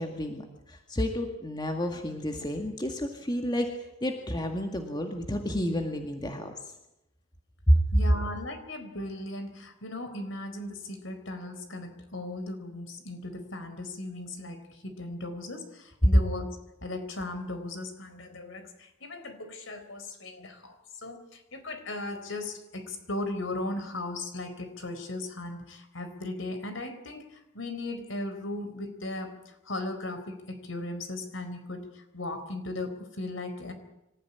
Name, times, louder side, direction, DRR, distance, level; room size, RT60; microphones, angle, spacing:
voice 1, 0.0-3.7 4.0-6.5 7.7-7.8, equal, 20° left, 4 dB, 2.0 m, -29 dB
voice 2, 7.9-16.6 16.8-33.7, left 2 dB, 60° left, 8 dB, 4.1 m, -37 dB
26.0 x 15.0 x 9.8 m, 0.87 s
head